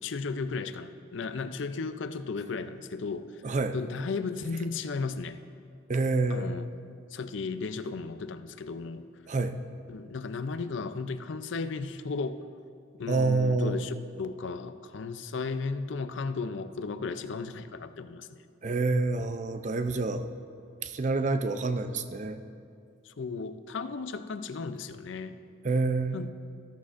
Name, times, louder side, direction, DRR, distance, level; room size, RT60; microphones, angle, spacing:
voice 1, 0.0-3.4 3.7-5.4 6.3-6.7 7.1-9.1 9.9-12.4 13.0-18.4 23.0-25.4 26.1-26.3, left 4 dB, 70° left, 11 dB, 0.5 m, -35 dB
voice 2, 3.4-3.8 5.9-6.6 9.3-9.6 13.1-13.8 18.6-20.3 20.8-22.4 25.6-26.2, right 3 dB, 35° right, 10 dB, 0.4 m, -27 dB
13.5 x 13.5 x 2.5 m, 2.4 s
head